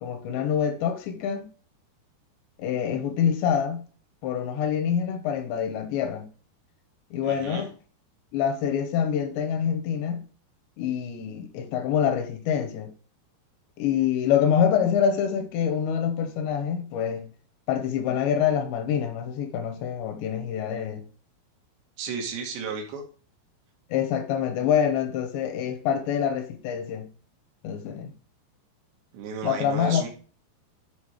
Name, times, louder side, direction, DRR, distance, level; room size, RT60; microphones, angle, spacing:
voice 1, 0.0-1.5 2.6-3.8 4.2-6.3 7.1-7.7 8.3-10.3 10.8-12.9 13.8-17.3 17.7-21.0 23.9-27.1 27.6-28.1 29.4-30.1, left 8 dB, 90° left, 3.2 m, -26 dB
voice 2, 7.2-7.7 22.0-23.0 29.1-30.1, right 5 dB, 85° right, 3.6 m, -33 dB
9.2 x 4.0 x 4.8 m
omnidirectional pair, 4.9 m